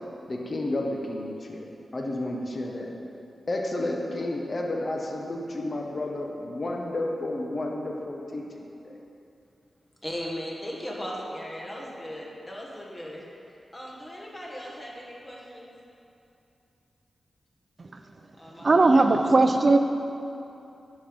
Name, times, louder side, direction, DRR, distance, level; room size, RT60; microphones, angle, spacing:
voice 1, 0.3-2.9 3.5-8.9, left 1 dB, 45° left, 1 dB, 1.0 m, -31 dB
voice 2, 10.0-13.3 13.7-15.7 18.4-19.5, equal, 20° left, -2 dB, 1.6 m, -38 dB
voice 3, 18.6-19.8, right 3 dB, 45° right, 7 dB, 0.5 m, -18 dB
9.8 x 5.3 x 5.3 m, 2.8 s
wide cardioid pair, 85°, 0 cm